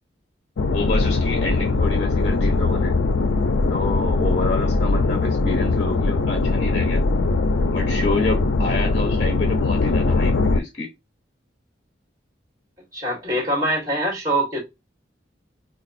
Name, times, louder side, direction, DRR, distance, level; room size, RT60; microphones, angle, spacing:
sound 1, 0.6-10.6, left 3 dB, 75° left, 0.4 m, -21 dB
voice 1, 0.7-2.9 3.7-7.0 7.7-10.9, left 3 dB, 35° left, 0.7 m, -28 dB
voice 2, 12.9-14.6, right 1 dB, 20° right, 2.3 m, -23 dB
3.9 x 2.4 x 2.5 m
head